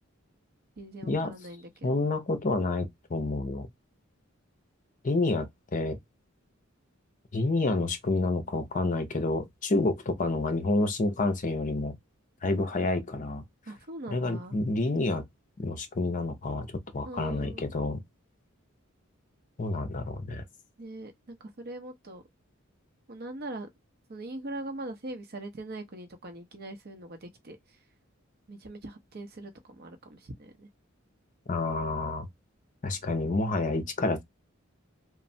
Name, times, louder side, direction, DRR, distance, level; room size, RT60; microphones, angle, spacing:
voice 1, 0.8-1.9 13.7-14.6 17.1-17.7 20.8-22.2 23.1-23.7 24.1-27.6 28.5-30.7, right 2 dB, 50° right, 0.7 m, -41 dB
voice 2, 1.8-3.7 5.0-5.5 5.7-6.0 7.3-12.0 12.4-13.4 14.1-15.2 15.6-16.7 16.9-18.0 19.6-20.4 31.5-32.3 32.8-34.2, left 2 dB, 40° left, 0.6 m, -28 dB
3.1 x 2.0 x 2.6 m
head